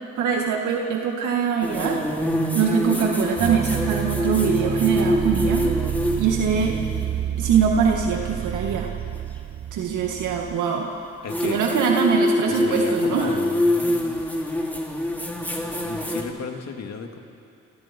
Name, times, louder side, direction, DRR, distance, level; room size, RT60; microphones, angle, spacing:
voice 1, 0.2-2.0 2.5-5.7 6.2-6.8 7.4-8.9 9.7-10.9 11.4-13.3, right 6 dB, 80° right, 0 dB, 2.1 m, -23 dB
sound 1, 1.6-7.1 9.1-9.2 11.3-16.2, left 1 dB, 5° left, 3.9 m, -25 dB
sound 2, 3.4-10.6, right 10 dB, 35° right, 0.5 m, -29 dB
voice 2, 11.2-11.6 12.5-14.3 15.8-17.2, left 5 dB, 60° left, 3 dB, 2.6 m, -34 dB
28.5 x 27.0 x 4.6 m, 2.6 s
cardioid pair, 90°, 30 cm